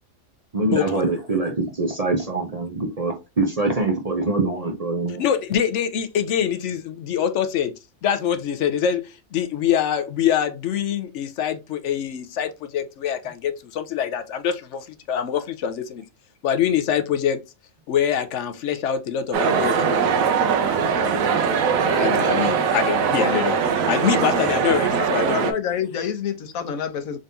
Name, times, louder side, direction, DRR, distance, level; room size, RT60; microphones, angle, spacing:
voice 1, 0.5-5.2, right 3 dB, 35° right, 0.6 m, -24 dB
voice 2, 5.2-16.0 16.4-17.4 17.9-20.9 21.3-21.4 22.0-23.6 23.9-25.5, left 9 dB, 65° left, 0.9 m, -25 dB
sound 1, 19.3-25.5, right 6 dB, 85° right, 1.1 m, -21 dB
voice 3, 24.0-24.4 24.6-27.2, left 8 dB, 90° left, 1.2 m, -29 dB
3.9 x 3.5 x 2.6 m
omnidirectional pair, 1.4 m